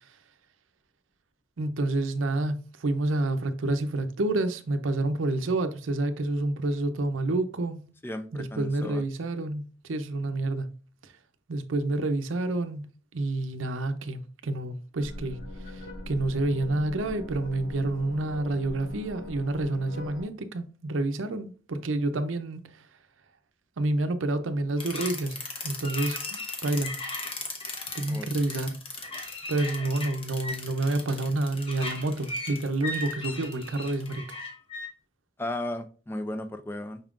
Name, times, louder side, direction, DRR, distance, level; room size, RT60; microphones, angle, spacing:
voice 1, 1.6-7.8 8.3-10.7 11.5-12.8 13.1-15.4 15.7-22.6 23.8-27.0 27.9-28.8 29.5-34.3, right 2 dB, 90° right, 0.6 m, -29 dB
voice 2, 8.0-9.0 28.1-28.4 35.4-37.0, left 1 dB, 10° left, 0.3 m, -35 dB
sound 1, 15.0-20.2, left 1 dB, 60° left, 1.5 m, -41 dB
sound 2, 24.8-34.9, left 2 dB, 30° left, 0.8 m, -36 dB
5.5 x 3.6 x 2.4 m
head